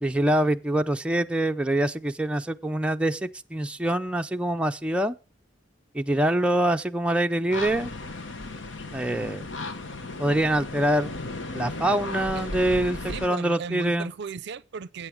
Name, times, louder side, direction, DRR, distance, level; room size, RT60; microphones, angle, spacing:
voice 1, 0.0-5.1 5.9-7.9 8.9-9.5 10.2-11.1 11.5-14.1, right 1 dB, 5° right, 0.5 m, -25 dB
sound 1, 7.5-13.3, left 2 dB, 75° left, 1.2 m, -35 dB
voice 2, 13.1-15.1, right 5 dB, 60° right, 0.5 m, -36 dB
13.0 x 8.4 x 5.0 m
head